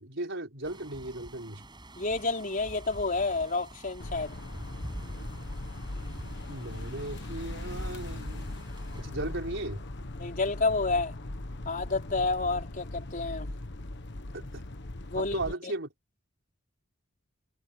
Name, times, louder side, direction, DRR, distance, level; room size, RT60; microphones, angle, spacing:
voice 1, 0.0-1.6 6.5-8.5 9.0-9.8 14.3-14.7 15.2-15.9, right 2 dB, 60° right, 5.4 m, -36 dB
sound 1, 0.6-9.0, right 1 dB, 20° right, 7.1 m, -45 dB
voice 2, 2.0-4.4 10.2-11.1 11.7-13.5 15.1-15.7, left 3 dB, 40° left, 4.1 m, -30 dB
sound 2, 4.0-15.5, left 1 dB, 60° left, 1.4 m, -39 dB
head